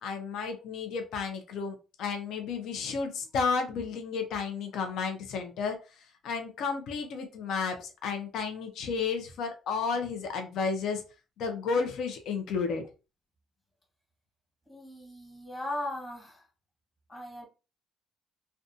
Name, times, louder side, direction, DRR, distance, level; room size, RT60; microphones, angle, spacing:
voice 1, 0.0-11.0 11.4-12.8, left 5 dB, 70° left, 5 dB, 0.5 m, -32 dB
voice 2, 14.7-16.5 17.1-17.4, left 1 dB, 15° left, 1 dB, 1.1 m, -38 dB
2.5 x 2.2 x 2.6 m, 0.31 s
cardioid pair, 115°, 0 cm